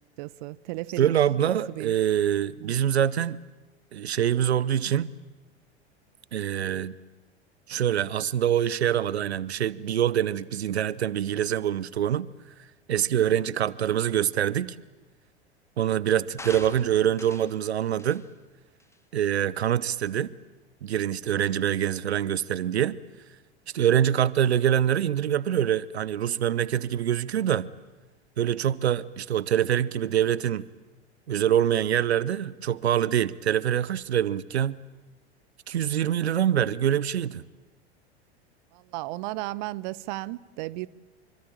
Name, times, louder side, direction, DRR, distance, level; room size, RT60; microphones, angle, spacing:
voice 1, 0.2-1.1 1.5-1.9 2.6-2.7 38.7-40.9, right 19 dB, 45° right, 0.8 m, -34 dB
voice 2, 1.0-3.4 3.9-5.1 6.3-7.0 7.7-12.3 12.9-14.8 15.8-18.2 19.1-20.3 20.8-23.0 23.7-27.7 28.4-30.7 31.3-34.7 35.7-37.4, right 10 dB, 70° right, 0.9 m, -25 dB
sound 1, 16.4-17.6 18.0-18.3 18.8-18.9, left 2 dB, 10° left, 2.2 m, -43 dB
26.5 x 25.0 x 8.7 m
figure-of-eight pair, 90°, 33 cm